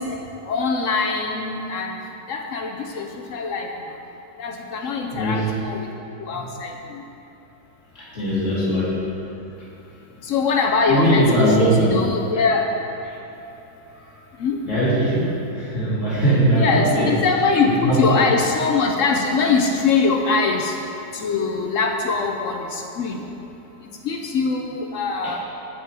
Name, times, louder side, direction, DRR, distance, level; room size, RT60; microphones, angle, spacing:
voice 1, 0.5-1.9 2.3-3.7 4.4-5.9 6.2-7.0 10.2-12.7 14.4-14.6 16.5-20.7 21.1-23.2 24.0-25.4, left 4 dB, 70° left, 2 dB, 0.7 m, -22 dB
voice 2, 5.1-5.5 6.3-6.4 8.0-9.0 10.9-11.9 13.1-13.2 14.6-17.1 17.6-18.2 25.2-25.4, right 1 dB, 40° left, -7 dB, 2.4 m, -20 dB
8.4 x 7.3 x 4.8 m, 3.0 s
omnidirectional pair, 2.0 m